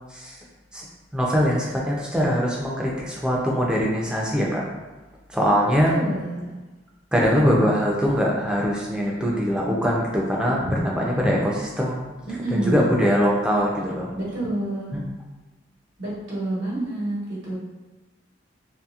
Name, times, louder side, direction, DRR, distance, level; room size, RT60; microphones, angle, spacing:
voice 1, 1.1-4.6 5.3-5.9 7.1-12.1 12.6-14.1 14.9-15.0, equal, 5° right, -3 dB, 0.4 m, -22 dB
voice 2, 5.9-6.5 10.6-10.7 12.2-12.9 14.2-15.0 16.0-17.6, right 1 dB, 75° right, -7 dB, 1.0 m, -28 dB
2.8 x 2.6 x 2.4 m, 1.2 s
head